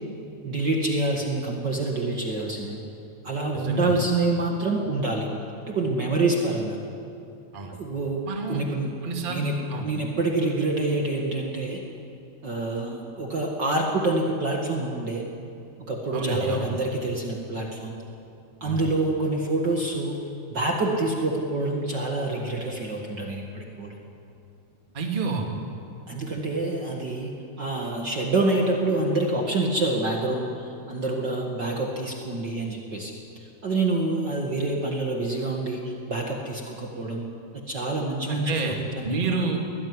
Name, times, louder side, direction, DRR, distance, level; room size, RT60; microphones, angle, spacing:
voice 1, 0.4-2.8 3.2-5.3 5.7-6.8 7.8-8.9 9.3-11.8 12.4-15.2 15.9-18.0 18.6-20.2 20.5-23.9 26.1-27.3 27.6-37.2 37.7-39.2, right 2 dB, 40° right, 0 dB, 2.2 m, -27 dB
voice 2, 3.5-4.0 7.5-7.7 8.3-8.6 9.0-9.4 9.7-9.9 16.1-16.7 18.6-18.9 24.9-25.5 38.3-38.7 39.0-39.6, right 4 dB, 20° right, 1 dB, 2.1 m, -29 dB
23.0 x 19.0 x 9.7 m, 2.6 s
omnidirectional pair, 3.4 m